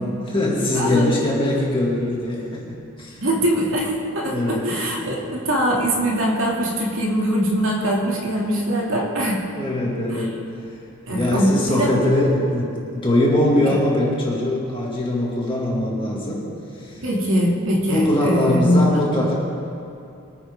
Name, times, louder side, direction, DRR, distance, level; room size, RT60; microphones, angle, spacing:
voice 1, 0.2-3.2 4.3-4.7 9.5-10.4 11.1-16.5 16.8-17.0 17.9-19.3, left 1 dB, 25° left, -4 dB, 2.3 m, -22 dB
voice 2, 0.7-1.1 3.2-9.5 10.1-10.3 11.1-12.1 13.7-13.8 17.0-19.0, equal, 65° right, -3 dB, 2.6 m, -22 dB
23.0 x 9.1 x 3.7 m, 2.6 s
head